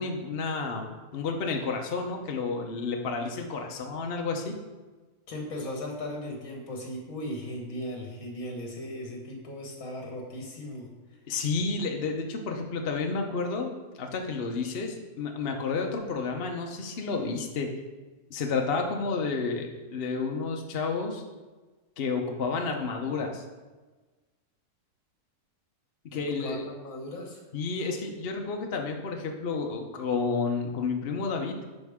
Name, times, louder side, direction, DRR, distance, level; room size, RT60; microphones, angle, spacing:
voice 1, 0.0-4.5 11.3-17.7 18.3-21.2 22.0-23.4 26.1-26.6 27.5-31.5, left 4 dB, 50° left, 2 dB, 0.8 m, -31 dB
voice 2, 5.3-10.9 26.1-27.4, left 1 dB, 65° left, 0 dB, 1.8 m, -37 dB
11.5 x 4.5 x 3.6 m, 1.3 s
omnidirectional pair, 1.6 m